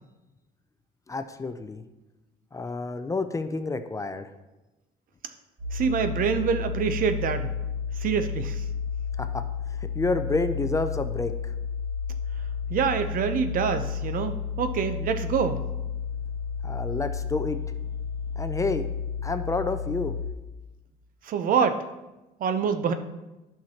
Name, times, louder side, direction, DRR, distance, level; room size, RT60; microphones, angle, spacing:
voice 1, 1.1-1.8 2.5-4.3 9.2-9.5 10.0-11.5 16.6-17.6 18.4-18.9 19.2-20.2, left 3 dB, 20° left, 9 dB, 0.4 m, -29 dB
sound 1, 5.6-20.3, left 6 dB, 35° right, 2.5 m, -32 dB
voice 2, 5.7-7.5 8.0-8.6 12.7-15.6 21.3-21.8 22.4-22.9, right 6 dB, 55° right, 9 dB, 0.7 m, -26 dB
10.5 x 5.9 x 2.9 m, 1.0 s
cardioid pair, 110°, 17 cm